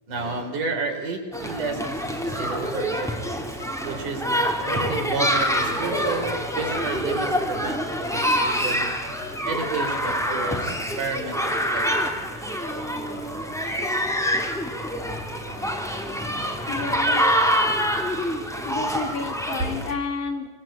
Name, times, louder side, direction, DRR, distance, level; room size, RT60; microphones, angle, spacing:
voice 1, 0.1-9.0 9.4-12.8 13.1-14.0 15.4-17.2 19.6-19.7, right 3 dB, 70° right, 4 dB, 5.7 m, -33 dB
sound 1, 1.3-19.9, equal, ahead, 2.9 m, -26 dB
voice 2, 16.7-17.2 18.6-20.5, left 5 dB, 65° left, 4 dB, 5.0 m, -30 dB
27.0 x 24.0 x 9.0 m, 1.2 s
omnidirectional pair, 3.8 m